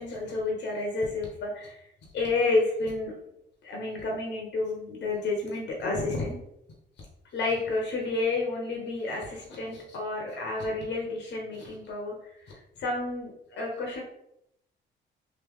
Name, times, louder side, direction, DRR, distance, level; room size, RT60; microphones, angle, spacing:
voice 1, 0.0-1.9 2.1-3.1 3.6-6.4 7.3-14.0, left 3 dB, 60° left, -1 dB, 0.9 m, -30 dB
3.0 x 2.8 x 3.5 m, 0.80 s
cardioid pair, 90°, 20 cm